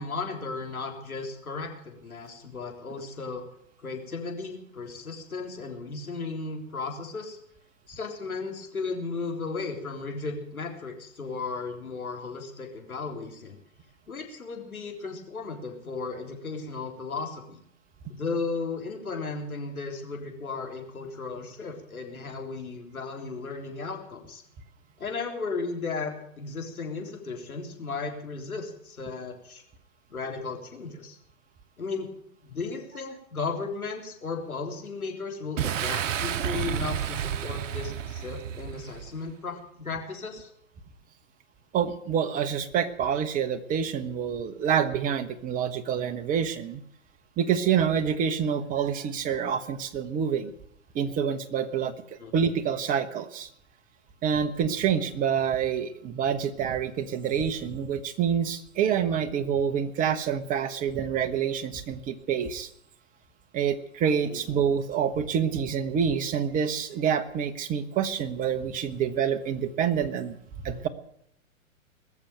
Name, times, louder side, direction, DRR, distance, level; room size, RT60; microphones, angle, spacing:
voice 1, 0.0-3.4 3.8-7.4 7.9-13.6 14.1-17.6 18.1-24.4 25.0-29.6 30.1-31.2 31.8-32.1 32.4-40.5 52.2-52.3 64.3-64.4, left 4 dB, 90° left, 2 dB, 3.8 m, -35 dB
Boom, 35.6-39.2, right 10 dB, 60° right, 1.0 m, -31 dB
voice 2, 41.7-46.8 47.4-50.5 50.9-53.5 54.2-62.7 63.5-70.4 70.6-70.9, right 8 dB, 20° right, 9 dB, 1.0 m, -27 dB
20.5 x 7.1 x 9.1 m, 0.73 s
hypercardioid pair, 125°, 42 cm